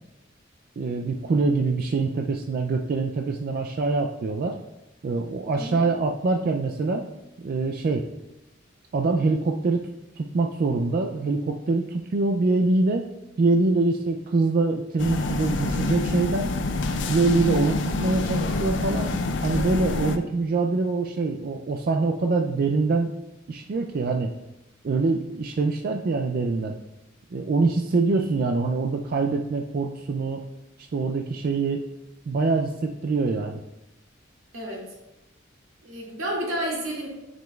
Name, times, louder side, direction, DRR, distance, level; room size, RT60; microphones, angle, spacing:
voice 1, 0.8-4.6 5.0-7.0 7.4-8.0 8.9-9.9 10.2-13.0 13.4-16.5 17.1-19.1 19.4-23.1 23.5-24.3 24.8-26.7 27.3-30.4 30.9-31.8 32.3-33.6, right 3 dB, 50° right, 3 dB, 0.3 m, -24 dB
voice 2, 5.5-5.8 34.5-34.8 35.8-37.1, right 1 dB, 90° right, -3 dB, 2.1 m, -30 dB
sound 1, 15.0-20.2, left 2 dB, 60° left, 0.5 m, -27 dB
9.1 x 5.0 x 2.3 m, 0.94 s
head